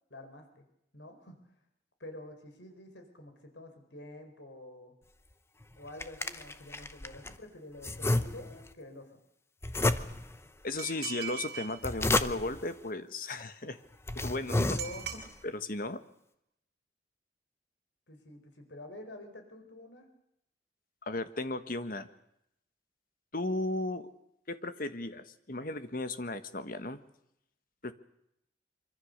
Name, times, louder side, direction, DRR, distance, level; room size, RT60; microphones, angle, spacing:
voice 1, 0.1-0.6 0.9-1.4 2.0-4.9 5.8-9.2 14.6-15.3 18.1-20.1, left 1 dB, 80° left, 6 dB, 4.5 m, -48 dB
sound 1, 5.6-7.4 7.8-8.7 9.6-10.4 11.6-12.7 13.4-13.5 13.9-15.3, left 2 dB, 15° left, 0.8 m, -31 dB
voice 2, 10.6-13.8 14.1-14.8 15.4-16.0 21.1-22.1 23.3-24.1 24.5-27.0 27.8-27.9, left 2 dB, 50° left, 10 dB, 1.5 m, -35 dB
sound 2, 10.8-11.8 14.8-15.2, right 9 dB, 65° right, 4.3 m, -39 dB
25.0 x 24.5 x 6.6 m, 0.78 s
head